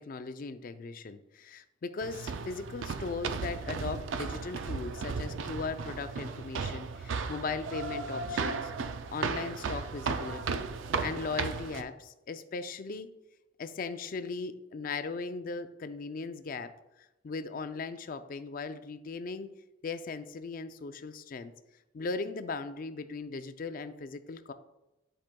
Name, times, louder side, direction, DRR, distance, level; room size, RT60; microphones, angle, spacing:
voice 1, 0.0-8.7 9.1-10.7 11.0-13.1 13.6-16.7 17.2-19.5 19.8-21.5 21.9-24.5, left 4 dB, 45° left, 10 dB, 0.4 m, -38 dB
sound 1, 2.0-11.8, right 4 dB, 70° right, 0.4 m, -35 dB
10.5 x 4.8 x 2.2 m, 0.97 s
head